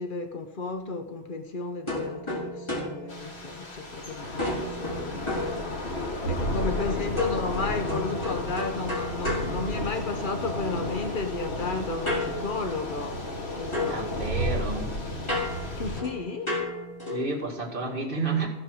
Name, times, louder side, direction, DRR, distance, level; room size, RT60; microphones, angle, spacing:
voice 1, 0.0-13.3 13.5-14.1 15.8-16.6, left 3 dB, 55° left, 0.9 m, -33 dB
sound 1, 1.9-4.0 4.4-6.2 7.2-10.4 12.1-13.4 13.7-17.4, left 2 dB, 25° left, 4.0 m, -34 dB
Thunder / Rain, 3.1-16.0, left 1 dB, 70° left, 2.1 m, -33 dB
voice 2, 13.8-15.0 17.1-18.5, right 3 dB, 55° right, 2.4 m, -30 dB
15.5 x 6.1 x 6.4 m
omnidirectional pair, 1.1 m